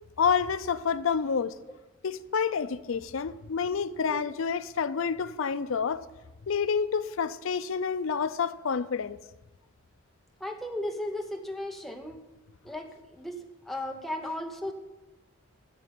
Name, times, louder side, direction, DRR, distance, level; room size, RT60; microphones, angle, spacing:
voice 1, 0.2-1.5 2.0-6.1 6.5-9.2, left 6 dB, 80° left, 0.5 m, -28 dB
voice 2, 10.4-12.2 12.6-13.4 13.7-14.7, left 1 dB, ahead, 0.8 m, -35 dB
13.0 x 5.3 x 7.5 m
head